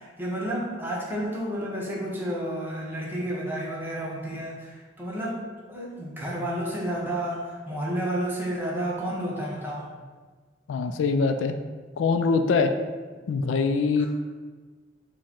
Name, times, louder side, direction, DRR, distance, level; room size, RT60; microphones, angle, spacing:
voice 1, 0.0-9.9 14.0-14.1, right 1 dB, 10° right, -4 dB, 0.8 m, -31 dB
voice 2, 10.7-11.6 12.0-12.7 13.3-14.1, left 4 dB, 85° left, 8 dB, 0.3 m, -23 dB
4.7 x 2.2 x 4.3 m, 1.4 s
head